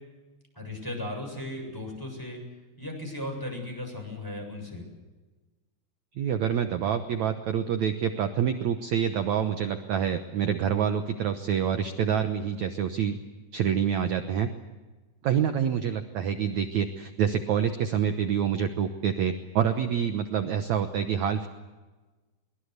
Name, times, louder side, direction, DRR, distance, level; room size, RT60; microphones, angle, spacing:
voice 1, 0.5-2.4 2.8-4.9, left 1 dB, 5° left, 0 dB, 7.1 m, -36 dB
voice 2, 6.2-13.2 13.5-14.5 15.2-21.5, right 8 dB, 70° right, 8 dB, 1.7 m, -27 dB
23.0 x 22.5 x 8.2 m, 1.2 s
omnidirectional pair, 4.7 m